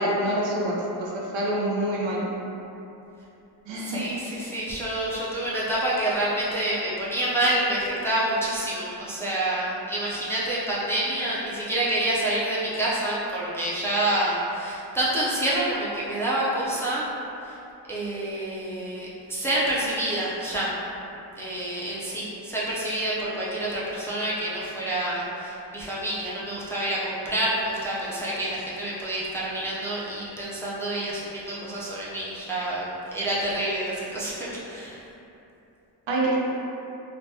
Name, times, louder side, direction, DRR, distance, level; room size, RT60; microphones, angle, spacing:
voice 1, 0.0-2.2 3.7-4.0 36.1-36.4, right 1 dB, 90° right, -4 dB, 0.6 m, -26 dB
voice 2, 3.8-17.1 17.4-17.6 17.9-20.7 21.4-35.0, right 1 dB, 5° left, -8 dB, 0.3 m, -28 dB
3.2 x 2.1 x 2.6 m, 2.9 s
wide cardioid pair, 135°, 43 cm